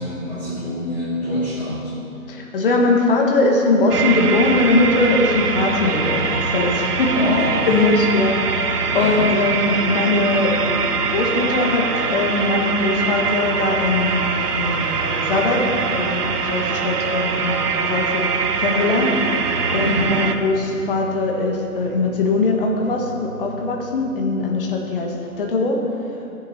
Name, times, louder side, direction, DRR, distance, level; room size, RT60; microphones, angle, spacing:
voice 1, 0.0-1.9 7.1-7.7 8.9-9.3 19.8-20.1, left 1 dB, 5° left, -16 dB, 1.8 m, -26 dB
voice 2, 2.3-7.2 7.7-19.4 19.7-25.8, left 2 dB, 35° left, 0 dB, 1.4 m, -21 dB
sound 1, 3.9-20.4, right 5 dB, 85° right, 1.1 m, -23 dB
sound 2, 19.5-25.1, right 3 dB, 55° right, 2.9 m, -39 dB
17.0 x 7.3 x 4.2 m, 2.8 s
hypercardioid pair, 160°, 45 cm